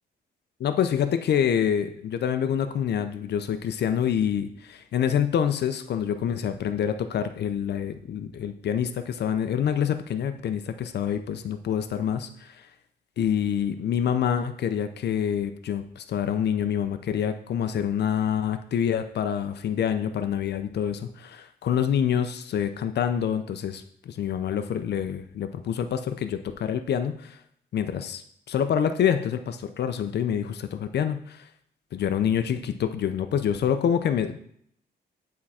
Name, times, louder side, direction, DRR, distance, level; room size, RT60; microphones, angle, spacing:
voice 1, 0.6-12.6 13.2-27.4 27.7-28.2 28.5-31.4 31.9-34.4, left 8 dB, 70° left, 9 dB, 0.6 m, -26 dB
9.7 x 3.7 x 4.2 m, 0.67 s
cardioid pair, 125°, 18 cm